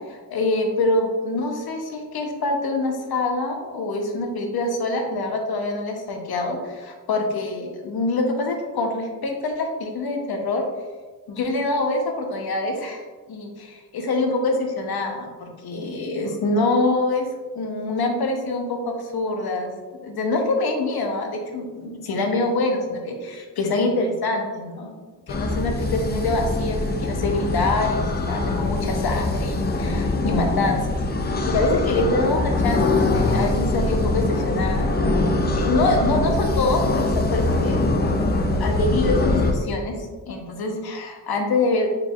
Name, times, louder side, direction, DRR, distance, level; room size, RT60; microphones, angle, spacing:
voice 1, 0.1-10.6 11.3-17.3 17.5-19.7 20.0-24.9 25.3-31.0 31.4-34.9 35.5-37.8 38.6-42.0, left 2 dB, 65° left, 3 dB, 0.8 m, -25 dB
sound 1, 25.3-39.5, left 2 dB, 25° left, 0.5 m, -23 dB
4.7 x 3.3 x 2.4 m, 1.4 s
cardioid pair, 60°, 40 cm